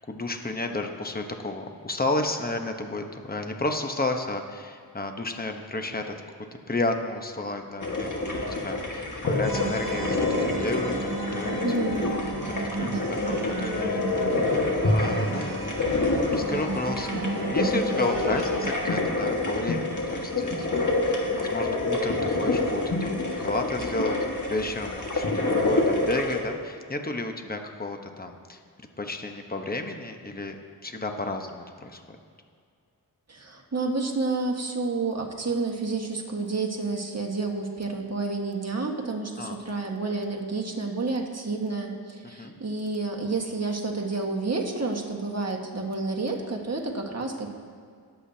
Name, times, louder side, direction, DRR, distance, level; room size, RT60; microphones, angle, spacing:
voice 1, 0.1-6.1 6.7-11.8 12.5-14.6 14.8-15.8 16.1-28.6 29.0-30.6 30.8-32.2 39.4-39.6 42.4-42.5, left 2 dB, 20° left, 4 dB, 1.0 m, -32 dB
sound 1, 7.8-26.4, left 2 dB, 45° left, 1.7 m, -27 dB
sound 2, 9.4-18.7, right 2 dB, 60° right, 2.6 m, -34 dB
voice 2, 11.6-12.2 12.8-13.3 33.3-47.5, right 3 dB, 40° right, 1 dB, 1.6 m, -30 dB
20.5 x 8.0 x 2.8 m, 2.2 s
wide cardioid pair, 50°, 41 cm